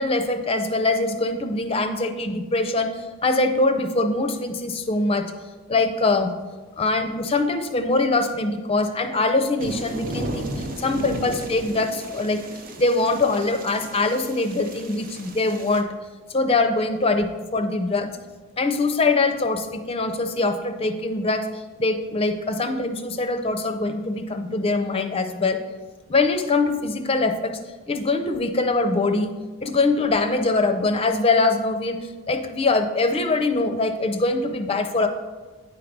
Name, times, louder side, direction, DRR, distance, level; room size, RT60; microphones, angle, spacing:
voice 1, 0.0-5.3 5.7-6.3 6.8-12.4 12.8-15.9 16.3-18.1 18.6-25.6 26.1-27.6 27.9-29.3 29.6-35.1, left 3 dB, 25° left, 8 dB, 0.5 m, -23 dB
sound 1, 9.6-15.8, right 1 dB, 40° right, 0.7 m, -34 dB
9.4 x 4.6 x 5.1 m, 1.3 s
head